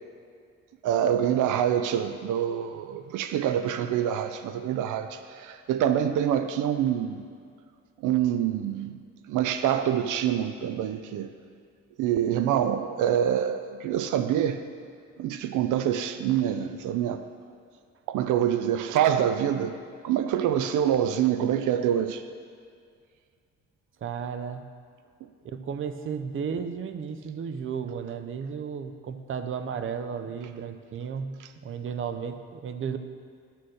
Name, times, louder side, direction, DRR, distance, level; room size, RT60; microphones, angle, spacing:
voice 1, 0.8-7.2 8.0-9.0 9.3-11.3 12.0-14.6 15.2-17.2 18.1-19.8 20.0-22.2, right 10 dB, 85° right, 9 dB, 0.5 m, -26 dB
voice 2, 24.0-24.7 25.4-33.0, right 6 dB, 45° right, 9 dB, 0.6 m, -34 dB
11.0 x 4.4 x 6.3 m, 2.2 s
cardioid pair, 90°, 30 cm